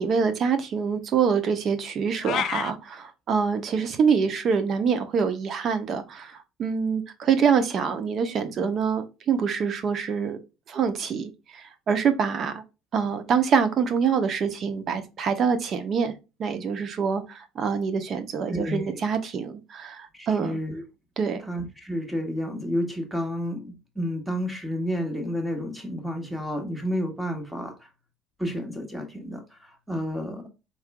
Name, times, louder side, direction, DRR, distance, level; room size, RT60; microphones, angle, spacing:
voice 1, 0.0-10.4 10.7-12.6 12.9-16.1 16.4-20.6 21.2-21.4, right 6 dB, 50° right, 1.0 m, -25 dB
sound 1, 2.2-2.7, left 10 dB, 60° left, 0.3 m, -28 dB
voice 2, 18.5-18.8 20.1-20.8 21.5-27.9 28.4-30.5, equal, 5° right, 1.5 m, -30 dB
4.4 x 3.6 x 2.3 m
supercardioid pair, 85°, 0 cm